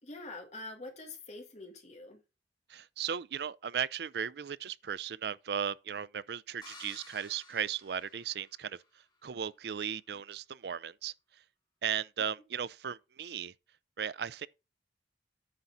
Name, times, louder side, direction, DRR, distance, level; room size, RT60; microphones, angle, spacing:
voice 1, 0.0-2.2, left 2 dB, 40° left, 1.9 m, -45 dB
voice 2, 2.7-11.4 11.8-13.5 14.0-14.5, right 8 dB, 65° right, 0.4 m, -36 dB
sound 1, 6.6-8.8, left 3 dB, 25° left, 2.7 m, -53 dB
9.6 x 3.9 x 5.9 m
head